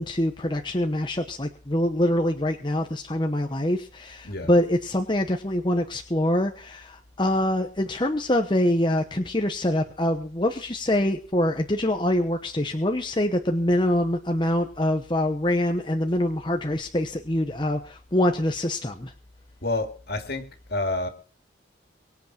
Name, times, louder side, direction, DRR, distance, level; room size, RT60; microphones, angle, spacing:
voice 1, 0.0-19.1, left 1 dB, 25° left, 1.0 m, -25 dB
voice 2, 19.6-21.1, left 2 dB, 55° left, 2.7 m, -29 dB
24.0 x 8.3 x 4.5 m
head